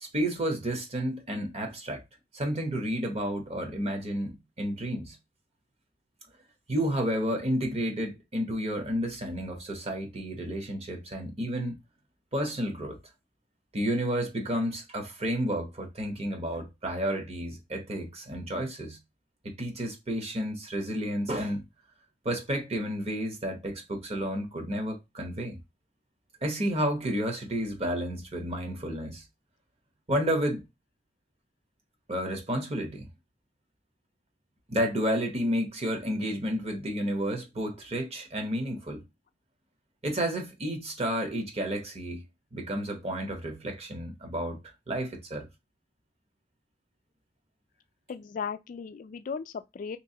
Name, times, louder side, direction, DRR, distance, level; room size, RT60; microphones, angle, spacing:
voice 1, 0.0-2.0 2.3-5.2 6.7-11.8 12.3-13.0 13.7-19.0 19.4-21.6 22.2-25.6 26.4-29.2 30.1-30.7 32.1-33.1 34.7-39.0 40.0-42.2 42.5-44.6 44.9-45.5, equal, 35° right, 0.9 m, -31 dB
voice 2, 48.1-50.0, left 6 dB, 45° left, 0.3 m, -36 dB
3.2 x 3.0 x 2.7 m
head